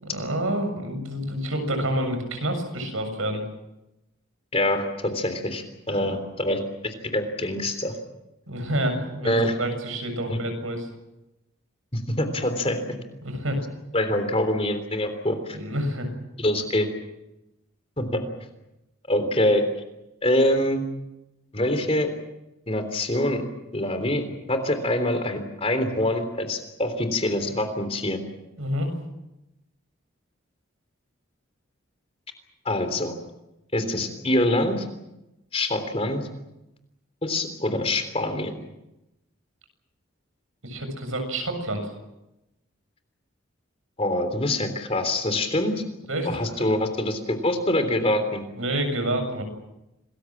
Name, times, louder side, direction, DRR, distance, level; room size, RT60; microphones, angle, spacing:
voice 1, 0.0-3.4 5.9-6.2 8.5-10.9 13.2-13.6 15.5-16.1 28.6-28.9 40.6-41.9 46.1-46.7 48.6-49.4, right 1 dB, 80° right, 6 dB, 7.1 m, -28 dB
voice 2, 4.5-7.9 9.2-9.6 10.3-10.4 11.9-12.9 13.9-15.6 16.4-16.9 18.0-18.2 19.1-19.7 20.2-20.8 21.5-22.1 22.7-23.4 23.7-28.2 32.7-33.1 33.7-34.9 35.5-36.3 37.2-38.5 44.0-45.8 46.2-48.4, left 1 dB, 30° left, 8 dB, 3.5 m, -25 dB
27.5 x 21.0 x 7.5 m, 0.93 s
head